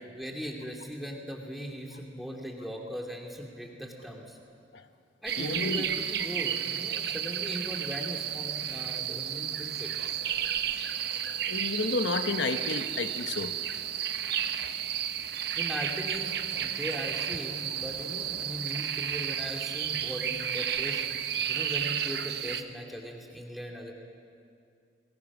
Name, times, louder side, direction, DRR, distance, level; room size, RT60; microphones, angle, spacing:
voice 1, 0.1-4.4 5.2-9.9 15.6-23.9, equal, ahead, 0 dB, 2.4 m, -39 dB
sound 1, 5.2-22.6, right 9 dB, 60° right, 0.9 m, -32 dB
voice 2, 5.4-5.9 11.5-13.5, left 3 dB, 70° left, 9 dB, 0.9 m, -31 dB
28.5 x 20.0 x 6.1 m, 2.4 s
head